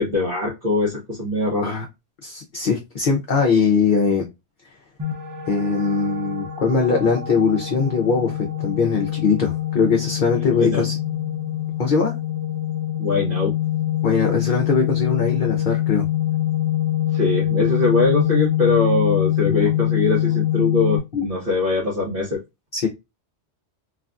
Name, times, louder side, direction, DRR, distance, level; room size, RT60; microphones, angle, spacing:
voice 1, 0.0-1.7 10.3-10.9 13.0-13.5 17.1-22.4, left 3 dB, 55° right, 1.1 m, -22 dB
voice 2, 2.2-4.3 5.5-11.0 11.8-12.1 14.0-16.1 19.5-19.7 21.1-21.2 22.7-22.9, left 5 dB, 50° left, 0.7 m, -21 dB
sound 1, 5.0-21.0, left 12 dB, 30° right, 0.4 m, -24 dB
3.3 x 2.3 x 2.4 m
omnidirectional pair, 1.2 m